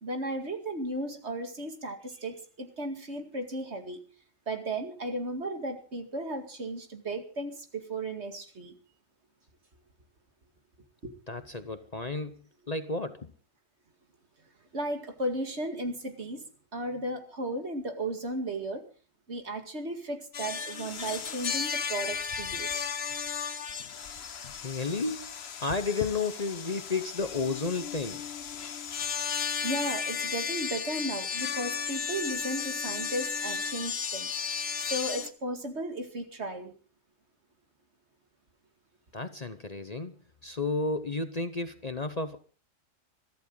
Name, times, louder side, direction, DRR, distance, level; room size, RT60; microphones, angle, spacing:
voice 1, 0.0-4.0 4.5-8.7 11.0-11.1 14.7-16.4 16.7-18.8 19.3-22.9 29.3-34.3 34.9-36.7, right 1 dB, 60° right, 6 dB, 2.5 m, -35 dB
voice 2, 11.3-13.3 24.6-25.3 25.6-28.2 39.1-40.1 40.4-42.4, left 3 dB, 35° left, 10 dB, 0.9 m, -32 dB
sound 1, 20.3-35.3, left 7 dB, 55° left, 1.1 m, -34 dB
22.5 x 14.0 x 3.9 m, 0.36 s
omnidirectional pair, 1.3 m